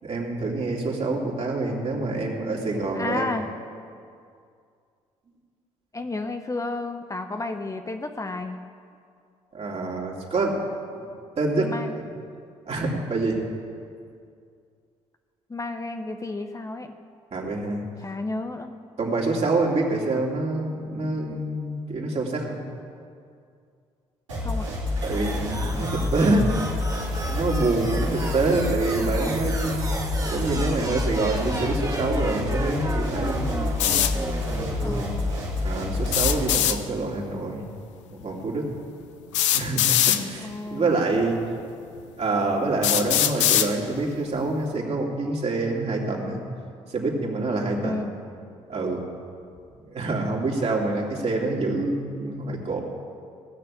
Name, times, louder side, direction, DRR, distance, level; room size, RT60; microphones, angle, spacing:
voice 1, 0.0-3.3 9.5-10.7 10.9-11.0 11.4-12.0 12.7-13.4 17.3-17.9 19.0-22.6 25.0-26.5 27.2-29.9 30.3-33.5 35.6-37.7 38.2-38.7 39.5-41.4 42.2-46.4 46.9-48.0 48.7-49.1 49.8-52.8, right 2 dB, 40° right, -1 dB, 3.2 m, -26 dB
voice 2, 2.9-3.5 5.9-8.6 11.6-12.0 15.5-16.9 18.0-18.7 24.4-24.7 34.8-35.4 40.4-41.0 47.8-48.1, left 2 dB, 20° left, 6 dB, 0.9 m, -32 dB
sound 1, 24.3-36.5, left 2 dB, 90° right, 2.9 m, -28 dB
sound 2, 25.0-35.0, right 2 dB, 20° right, 1.8 m, -34 dB
sound 3, 33.8-34.1 36.1-36.8 38.2-38.3 39.3-40.2 41.2-41.3 42.0-42.1 42.8-43.7, left 12 dB, 85° left, 0.6 m, -21 dB
17.0 x 6.8 x 8.8 m, 2.3 s
hypercardioid pair, 50°, 15 cm